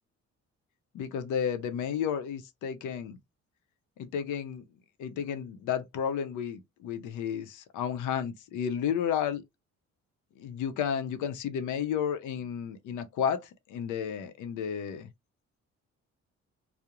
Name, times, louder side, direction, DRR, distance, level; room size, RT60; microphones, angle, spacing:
voice 1, 0.9-3.2 4.0-4.6 5.0-9.4 10.4-13.4 13.7-15.1, left 8 dB, 85° left, 0.6 m, -32 dB
2.3 x 2.0 x 2.9 m
cardioid pair, 90°, 30 cm